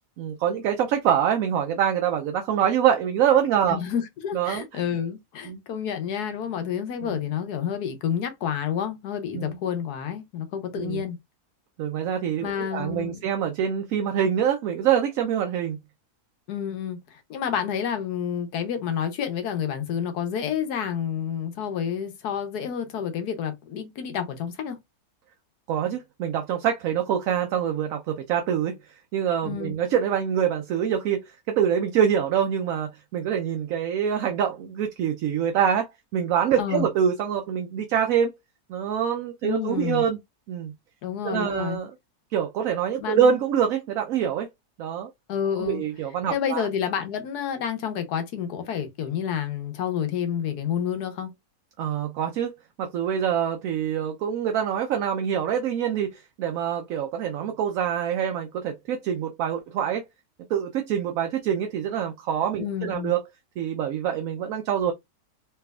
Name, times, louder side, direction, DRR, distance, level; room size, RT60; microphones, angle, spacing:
voice 1, 0.2-3.8 4.3-4.8 5.4-5.6 7.0-7.2 9.3-9.6 10.8-11.0 11.8-15.8 25.7-38.3 38.7-40.2 40.5-40.7 41.2-41.9 42.3-44.5 44.8-45.1 45.6-46.7 51.8-60.0 60.5-63.2 63.6-64.9, right 8 dB, 70° right, 0.9 m, -25 dB
voice 2, 3.7-11.2 12.4-13.2 16.5-24.8 29.4-29.8 36.6-36.9 39.4-40.0 41.0-41.8 43.0-43.4 45.3-45.8 46.3-51.3 62.6-63.1, left 8 dB, 85° left, 1.4 m, -29 dB
3.3 x 3.3 x 2.3 m
omnidirectional pair, 1.7 m